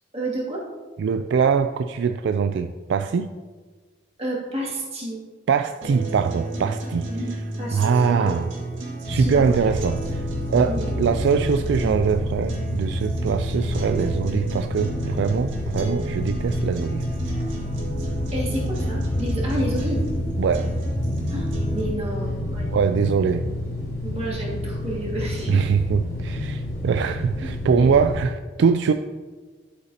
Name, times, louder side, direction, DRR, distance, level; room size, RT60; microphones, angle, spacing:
voice 1, 0.1-0.6 4.2-5.2 7.1-7.3 7.6-8.4 9.0-9.8 10.6-11.1 18.3-20.0 21.3-22.8 24.0-25.6 27.4-27.5 27.7-27.9, right 1 dB, 35° right, -5 dB, 2.4 m, -31 dB
voice 2, 1.0-3.3 5.5-7.1 7.7-8.5 9.1-10.2 10.5-17.0 20.4-20.7 22.7-23.5 25.5-28.9, right 6 dB, 65° right, 8 dB, 0.3 m, -22 dB
sound 1, 5.8-21.8, right 1 dB, 85° right, 1.9 m, -32 dB
sound 2, 9.0-28.2, left 1 dB, 55° left, 3.0 m, -29 dB
11.5 x 8.2 x 2.8 m, 1.4 s
head